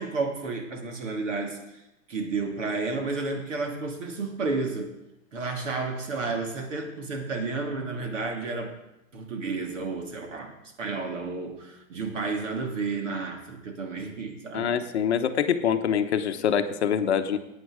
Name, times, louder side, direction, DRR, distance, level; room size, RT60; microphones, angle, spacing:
voice 1, 0.0-1.8 2.1-4.9 5.3-8.7 9.1-14.7, right 3 dB, 60° right, 3 dB, 2.8 m, -31 dB
voice 2, 14.5-17.4, left 8 dB, 50° left, 8 dB, 0.9 m, -25 dB
16.0 x 9.1 x 4.9 m, 0.89 s
hypercardioid pair, 180°, 41 cm